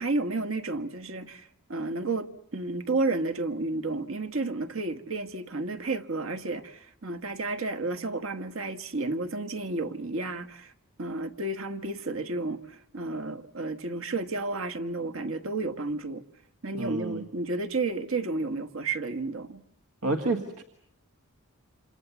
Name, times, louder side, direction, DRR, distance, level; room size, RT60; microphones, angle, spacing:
voice 1, 0.0-2.3 2.5-10.7 11.0-16.2 16.6-19.6, right 3 dB, 65° right, 1.3 m, -31 dB
voice 2, 16.7-17.2 20.0-20.6, right 2 dB, 85° right, 1.8 m, -29 dB
28.0 x 27.5 x 7.0 m
head